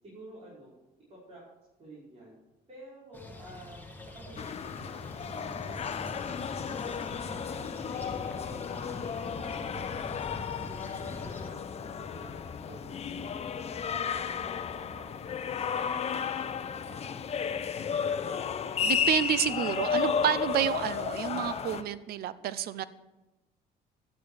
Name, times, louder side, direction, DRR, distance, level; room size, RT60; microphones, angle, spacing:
voice 1, 0.0-0.7 1.1-1.4 1.8-2.3 2.7-3.8 4.1-5.0 5.3-9.0 9.4-10.0 10.5-17.4, right 1 dB, 40° right, -7 dB, 5.6 m, -50 dB
sound 1, 3.1-11.5, left 1 dB, 10° left, 2.0 m, -44 dB
sound 2, 4.4-21.8, left 7 dB, 40° left, 0.8 m, -33 dB
sound 3, 8.0-15.6, left 4 dB, 60° left, 1.3 m, -52 dB
voice 2, 18.8-22.8, right 10 dB, 65° right, 15 dB, 0.7 m, -29 dB
11.5 x 8.9 x 6.6 m, 1.0 s
cardioid pair, 110°, 17 cm